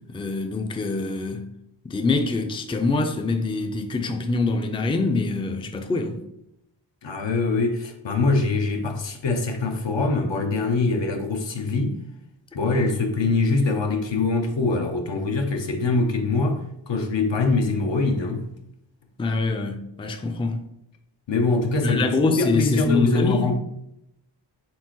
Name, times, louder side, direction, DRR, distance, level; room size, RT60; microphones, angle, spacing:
voice 1, 0.1-1.4 1.8-6.2 19.2-20.6 21.8-23.5, left 3 dB, 10° left, 0.4 m, -24 dB
voice 2, 7.0-12.0 12.5-18.5 21.3-23.6, left 3 dB, 65° left, 0.8 m, -23 dB
4.4 x 3.5 x 3.1 m
cardioid pair, 50°, 48 cm